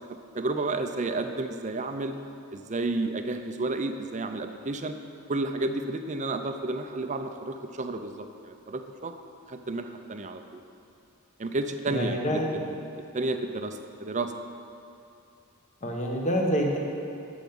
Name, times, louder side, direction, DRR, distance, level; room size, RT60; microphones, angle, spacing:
voice 1, 0.3-2.1 2.5-5.0 5.3-9.1 9.5-10.6 11.4-12.9 13.1-14.3, right 2 dB, 35° right, 7 dB, 0.6 m, -31 dB
voice 2, 11.9-12.5 15.8-16.8, equal, 35° left, 0 dB, 1.3 m, -27 dB
13.5 x 5.9 x 5.3 m, 2.7 s
head